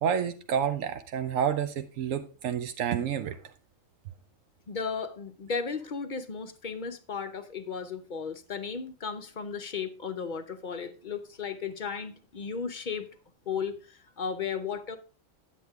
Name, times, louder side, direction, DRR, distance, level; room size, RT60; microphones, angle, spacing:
voice 1, 0.0-3.4, right 8 dB, 85° right, 1.0 m, -29 dB
voice 2, 4.7-13.1 13.5-15.0, left 6 dB, 50° left, 0.6 m, -35 dB
9.3 x 8.0 x 3.5 m
omnidirectional pair, 1.3 m